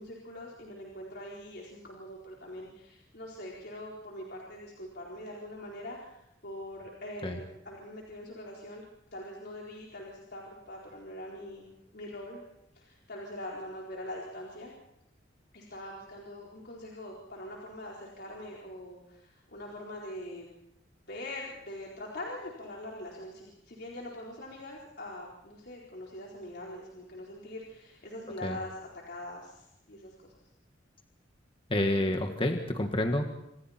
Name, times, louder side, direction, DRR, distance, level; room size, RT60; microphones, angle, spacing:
voice 1, 0.0-8.8 9.1-12.4 12.7-14.7 15.5-20.5 21.1-28.7 29.1-30.3, left 1 dB, 60° left, -3 dB, 4.3 m, -43 dB
voice 2, 31.7-33.3, left 1 dB, 30° left, 4 dB, 1.7 m, -28 dB
27.5 x 26.5 x 4.4 m, 0.85 s
head